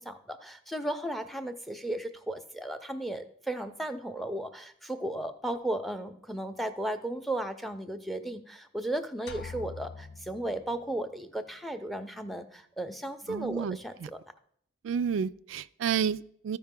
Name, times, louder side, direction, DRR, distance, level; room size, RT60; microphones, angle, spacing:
voice 1, 0.0-14.2, right 1 dB, ahead, 9 dB, 0.5 m, -35 dB
sound 1, 9.3-11.1, left 4 dB, 60° left, 0.5 m, -44 dB
voice 2, 13.3-13.8 14.8-16.6, right 7 dB, 90° right, 13 dB, 0.3 m, -30 dB
14.0 x 4.9 x 3.7 m, 0.65 s
head